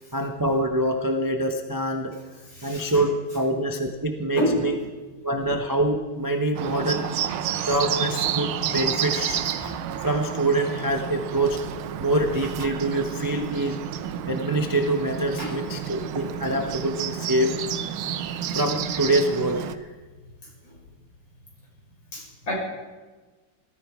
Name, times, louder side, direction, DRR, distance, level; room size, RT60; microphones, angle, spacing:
voice 1, 0.1-2.1 2.6-4.8 5.2-7.1 7.5-11.6 12.0-13.8 14.3-17.5 18.5-19.6, right 1 dB, 25° right, 4 dB, 0.4 m, -25 dB
voice 2, 2.4-2.9 4.4-4.7 15.4-15.6 18.9-19.1 20.6-20.7 22.1-22.5, equal, 60° left, -4 dB, 6.8 m, -29 dB
Bird, 6.5-19.8, right 9 dB, 75° right, 1.6 m, -30 dB
18.5 x 14.0 x 4.9 m, 1.3 s
omnidirectional pair, 2.4 m